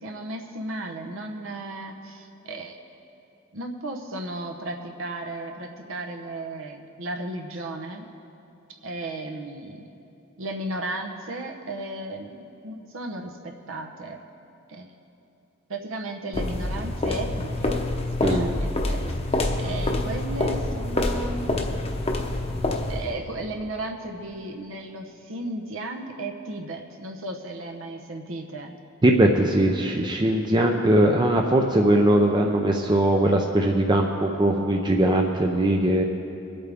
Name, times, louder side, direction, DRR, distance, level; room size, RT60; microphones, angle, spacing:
voice 1, 0.0-2.8 3.5-8.1 8.8-9.9 10.4-14.2 14.7-14.9 15.7-17.8 18.2-19.1 19.6-21.7 22.9-28.7, right 2 dB, 70° right, 2 dB, 0.9 m, -35 dB
sound 1, 16.3-23.2, left 2 dB, 30° left, 0.9 m, -26 dB
voice 2, 18.2-18.5 29.0-36.0, right 1 dB, 20° right, 2 dB, 0.5 m, -20 dB
24.0 x 8.7 x 3.5 m, 2.8 s
head